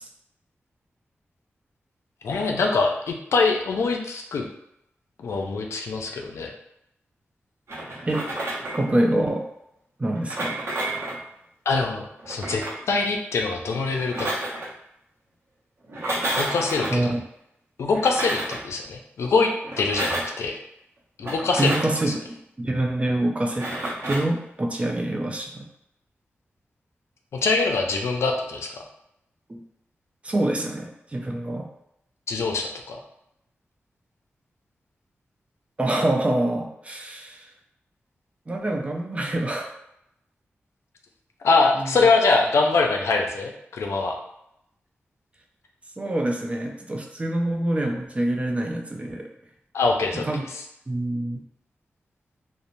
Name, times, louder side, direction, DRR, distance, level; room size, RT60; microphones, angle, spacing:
voice 1, 2.2-4.5 5.2-6.5 11.7-14.3 16.4-17.1 17.8-19.5 19.8-20.6 21.2-21.7 27.3-28.7 32.3-33.0 41.4-44.2 49.7-50.2, left 3 dB, 85° left, 2 dB, 0.4 m, -23 dB
sound 1, 7.7-8.9 10.1-11.2 12.2-12.8 13.9-14.7 15.8-17.0 17.9-18.6 19.6-20.4 21.2-21.9 23.5-24.3, right 1 dB, 65° right, 0.7 m, -30 dB
voice 2, 8.8-9.4 10.0-10.6 16.9-17.2 21.6-25.6 29.5-29.6 30.2-31.6 35.8-37.5 38.5-39.7 41.7-42.0 46.0-49.3 50.1-50.5 50.9-51.4, right 1 dB, 30° right, 1 dB, 0.5 m, -26 dB
2.9 x 2.0 x 2.5 m, 0.79 s
cardioid pair, 60°, 5 cm